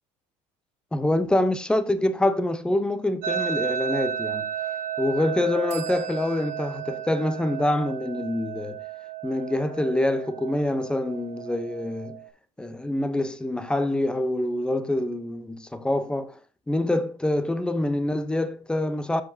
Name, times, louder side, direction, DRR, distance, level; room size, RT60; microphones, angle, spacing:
voice 1, 0.9-4.5 5.0-8.8 9.2-12.2 12.6-16.4 16.7-19.2, left 1 dB, 5° left, 0.6 m, -25 dB
sound 1, 3.2-12.3, right 9 dB, 75° right, 2.8 m, -33 dB
sound 2, 5.7-9.3, right 12 dB, 50° right, 1.4 m, -48 dB
13.5 x 5.1 x 2.7 m
cardioid pair, 150°, 14 cm